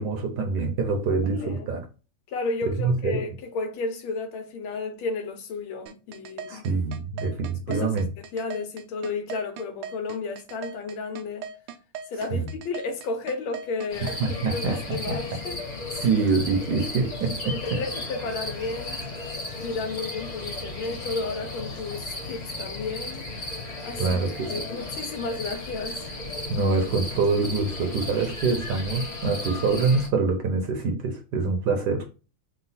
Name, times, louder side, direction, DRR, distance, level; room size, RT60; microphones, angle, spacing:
voice 1, 0.0-1.8 2.8-3.2 6.5-8.0 12.3-12.5 14.0-15.4 15.9-17.6 24.0-24.5 26.5-32.0, right 4 dB, 65° right, 1.2 m, -25 dB
voice 2, 2.3-6.7 7.7-11.5 12.1-15.6 17.5-19.0 19.6-23.3 23.8-24.2 24.5-26.1, left 3 dB, 75° left, 1.6 m, -32 dB
sound 1, 5.9-14.2, right 7 dB, 85° right, 1.4 m, -38 dB
sound 2, 13.9-30.1, left 2 dB, 50° left, 0.5 m, -35 dB
3.9 x 2.3 x 4.0 m
omnidirectional pair, 2.3 m